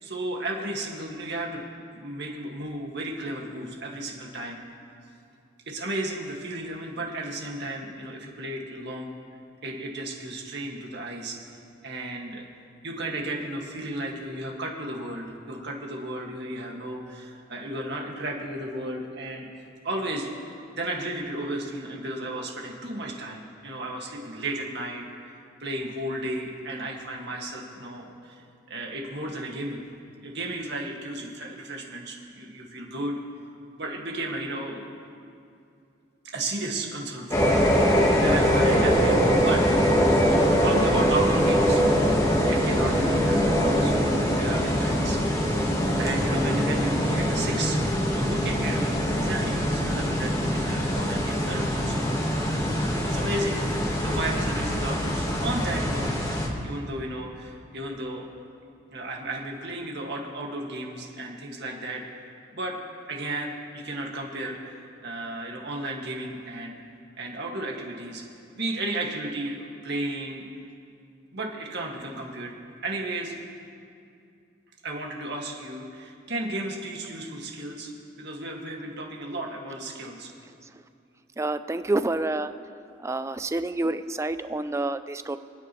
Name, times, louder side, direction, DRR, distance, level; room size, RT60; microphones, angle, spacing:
voice 1, 0.0-1.6 1.9-4.6 5.7-9.1 9.6-11.4 11.8-12.4 12.8-19.5 19.8-20.3 20.7-25.1 25.3-29.8 30.2-33.2 33.8-34.9 36.2-39.6 40.6-41.8 42.5-45.4 46.0-47.8 48.1-52.1 52.8-56.1 56.6-58.3 58.9-62.0 62.5-62.8 63.1-66.8 67.2-68.2 68.6-70.5 71.3-72.5 72.8-73.3 74.8-77.9 78.2-80.3, right 1 dB, 60° right, 0 dB, 1.9 m, -34 dB
Low Approach R, 37.3-56.5, equal, 15° left, 1.4 m, -23 dB
voice 2, 81.4-82.5 83.0-85.4, right 2 dB, 15° right, 12 dB, 0.4 m, -28 dB
29.0 x 9.8 x 3.1 m, 2.4 s
head